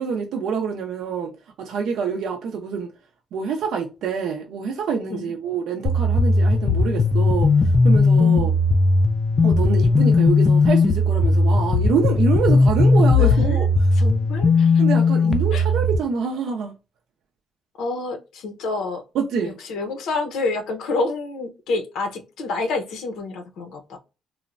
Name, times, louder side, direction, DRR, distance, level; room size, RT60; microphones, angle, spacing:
voice 1, 0.0-1.3 1.6-2.9 3.3-8.5 9.4-13.7 14.8-16.7 19.1-19.6, right 6 dB, 75° right, 0.4 m, -26 dB
sound 1, 5.9-16.0, left 3 dB, 30° left, 0.3 m, -17 dB
voice 2, 13.2-13.7 14.0-14.8 15.5-15.6 17.8-19.0 19.4-24.0, left 3 dB, 85° left, 0.6 m, -28 dB
3.1 x 2.0 x 2.4 m
cardioid pair, 135°, 0 cm